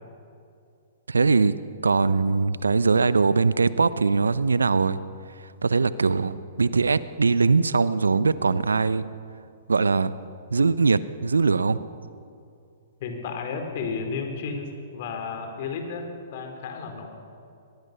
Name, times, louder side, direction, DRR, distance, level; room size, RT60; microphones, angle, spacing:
voice 1, 1.1-1.5 1.8-5.0 5.6-9.1 9.7-10.1 10.5-11.8, right 4 dB, 80° right, 16 dB, 0.8 m, -21 dB
voice 2, 13.0-17.1, left 5 dB, 50° left, 5 dB, 4.3 m, -33 dB
23.0 x 21.0 x 6.8 m, 2.5 s
figure-of-eight pair, 115°, 0 cm